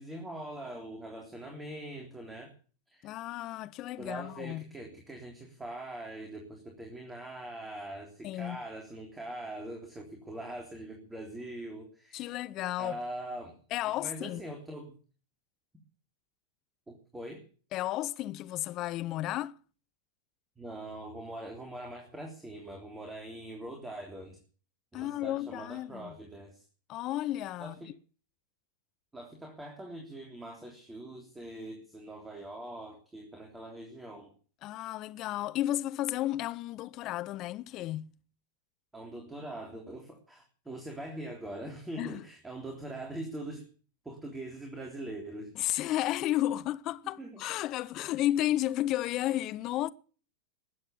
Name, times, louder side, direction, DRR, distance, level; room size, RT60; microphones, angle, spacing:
voice 1, 0.0-2.5 2.9-3.1 4.0-12.4 12.8-13.6 13.9-14.9 16.9-17.4 20.6-24.4 24.9-26.6 27.6-27.9 29.1-34.3 38.9-43.7 44.1-45.5 47.2-47.4, right 1 dB, 10° right, 3.4 m, -42 dB
voice 2, 3.0-4.6 8.2-8.6 12.1-13.0 13.7-14.4 17.7-19.6 24.9-26.1 26.9-27.8 34.6-38.1 42.0-42.2 45.6-49.9, left 14 dB, 35° left, 0.6 m, -33 dB
20.5 x 8.7 x 7.0 m
figure-of-eight pair, 90°, 0 cm